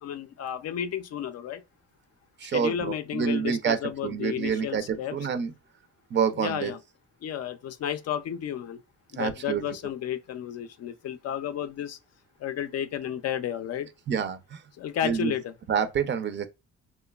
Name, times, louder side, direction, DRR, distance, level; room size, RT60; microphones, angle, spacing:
voice 1, 0.0-1.6 2.5-5.2 6.4-6.8 7.2-8.8 9.1-12.0 12.4-13.9 14.8-15.5, left 9 dB, 55° left, 0.5 m, -32 dB
voice 2, 2.4-3.8 4.0-5.5 6.1-6.7 9.1-9.6 14.1-14.6 15.0-15.3 15.7-16.5, right 7 dB, 40° right, 0.4 m, -27 dB
2.9 x 2.2 x 2.2 m
cardioid pair, 90°, 30 cm